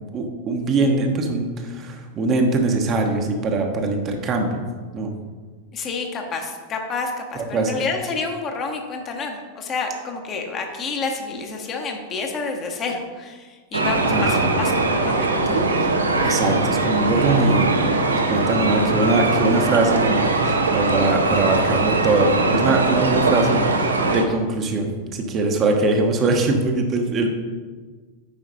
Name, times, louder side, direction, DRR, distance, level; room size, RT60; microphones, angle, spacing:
voice 1, 0.1-4.6 4.9-5.1 7.4-7.7 14.1-14.5 15.8-15.9 16.2-27.3, right 3 dB, 30° right, 3 dB, 1.1 m, -22 dB
voice 2, 5.7-15.6, left 4 dB, 30° left, 3 dB, 1.2 m, -29 dB
sound 1, 13.7-24.2, right 2 dB, 75° right, 0.8 m, -21 dB
8.9 x 5.1 x 4.1 m, 1.4 s
figure-of-eight pair, 90°, 0 cm